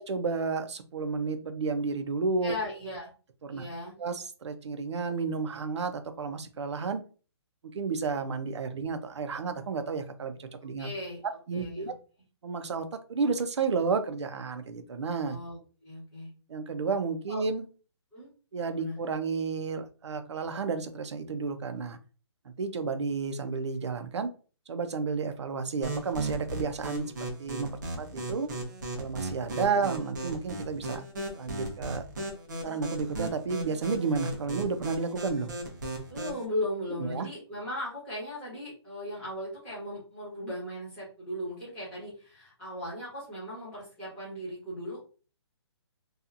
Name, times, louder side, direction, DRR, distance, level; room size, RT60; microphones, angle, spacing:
voice 1, 0.0-2.6 3.4-3.6 4.0-7.0 7.7-10.9 11.5-11.9 12.4-15.4 16.5-17.6 18.5-22.0 22.5-24.3 24.7-27.0 27.4-28.5 29.0-31.0 31.4-32.0 32.6-35.5 36.9-37.3, right 4 dB, 80° right, 9 dB, 0.5 m, -31 dB
voice 2, 2.4-3.1 3.5-3.9 10.8-11.2 11.5-11.9 15.2-16.3 17.3-17.4 18.1-18.3 18.7-19.0 29.6-29.8 36.1-45.0, left 1 dB, 5° left, -10 dB, 1.1 m, -37 dB
sound 1, 25.8-36.4, right 2 dB, 40° right, 0.7 m, -36 dB
2.8 x 2.4 x 2.4 m, 0.37 s
hypercardioid pair, 175°, 15 cm